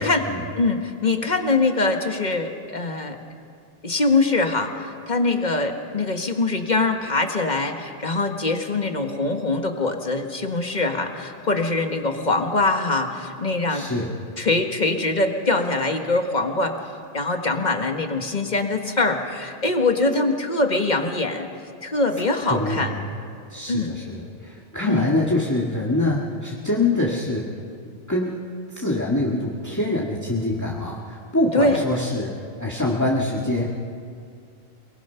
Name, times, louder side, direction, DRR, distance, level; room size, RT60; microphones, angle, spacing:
voice 1, 0.0-0.5 13.7-14.1 22.4-23.1 23.5-27.6 28.1-33.6, left 2 dB, 15° left, -4 dB, 1.8 m, -25 dB
voice 2, 0.5-3.2 3.8-13.9 14.4-16.8 17.1-21.5 21.8-22.9 23.7-23.9 24.9-25.1 31.5-31.8, left 2 dB, 45° left, 4 dB, 1.7 m, -23 dB
29.0 x 20.0 x 5.7 m, 2.3 s
omnidirectional pair, 1.1 m